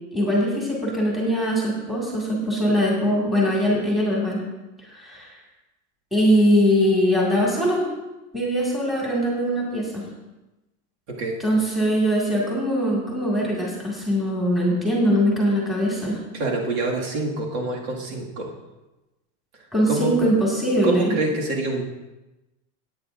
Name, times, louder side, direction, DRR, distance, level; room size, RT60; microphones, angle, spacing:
voice 1, 0.1-4.4 4.9-5.4 6.1-7.8 8.3-10.0 11.4-16.2 19.7-21.1, equal, ahead, -5 dB, 2.1 m, -21 dB
voice 2, 11.1-11.4 16.3-18.5 19.9-20.1 20.8-21.8, right 2 dB, 55° right, -2 dB, 2.2 m, -26 dB
18.0 x 9.1 x 2.6 m, 1.0 s
supercardioid pair, 175°, 39 cm